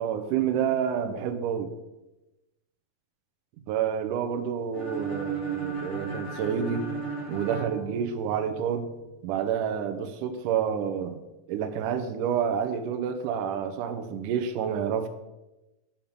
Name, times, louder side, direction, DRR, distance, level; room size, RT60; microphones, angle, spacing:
voice 1, 0.0-1.7 3.7-6.9 7.3-8.9 9.2-11.2 11.5-15.1, right 8 dB, 80° right, 8 dB, 2.0 m, -29 dB
sound 1, 4.7-8.6, right 5 dB, 30° left, 2.0 m, -34 dB
8.6 x 5.8 x 5.4 m, 1.0 s
omnidirectional pair, 4.2 m